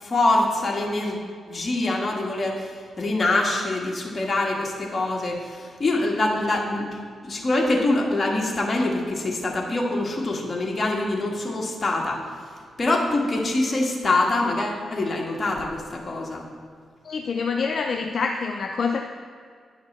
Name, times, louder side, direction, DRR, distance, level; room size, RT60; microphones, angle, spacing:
voice 1, 0.0-1.2 1.5-2.7 3.0-12.2 12.8-16.4, left 2 dB, 35° left, -1 dB, 1.4 m, -24 dB
voice 2, 17.0-19.0, left 5 dB, 55° left, 4 dB, 0.4 m, -26 dB
9.6 x 5.9 x 4.2 m, 2.1 s
cardioid pair, 90°, 0 cm